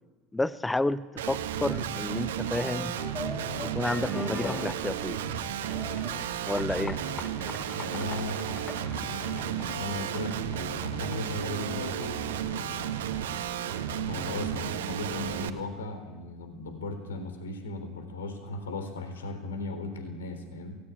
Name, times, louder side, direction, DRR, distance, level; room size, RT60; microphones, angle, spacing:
voice 1, 0.3-3.0 3.7-5.2 6.4-7.0, left 2 dB, 10° left, 17 dB, 0.7 m, -30 dB
Guitar, 1.2-15.5, right 9 dB, 70° right, 1.8 m, -33 dB
sound 1, 2.5-15.2, left 3 dB, 25° left, 4.2 m, -43 dB
voice 2, 7.7-12.9 14.1-20.8, left 2 dB, 75° left, 7 dB, 3.7 m, -37 dB
27.5 x 19.0 x 8.8 m, 1.3 s
figure-of-eight pair, 75°, 0 cm